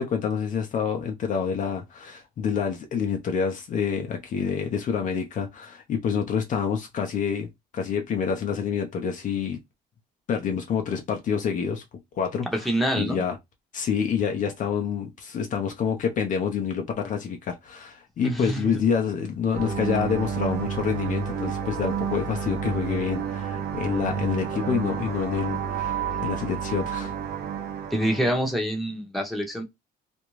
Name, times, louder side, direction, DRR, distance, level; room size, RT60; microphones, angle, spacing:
voice 1, 0.0-7.5 7.7-9.6 10.3-11.8 12.2-12.5 13.0-13.3 13.7-27.1, left 6 dB, 50° left, 0.6 m, -27 dB
voice 2, 12.5-13.2 18.2-18.7 27.9-29.6, equal, ahead, 0.9 m, -26 dB
sound 1, 19.5-28.5, right 7 dB, 70° right, 0.7 m, -30 dB
2.5 x 2.2 x 3.0 m
cardioid pair, 110°, 17 cm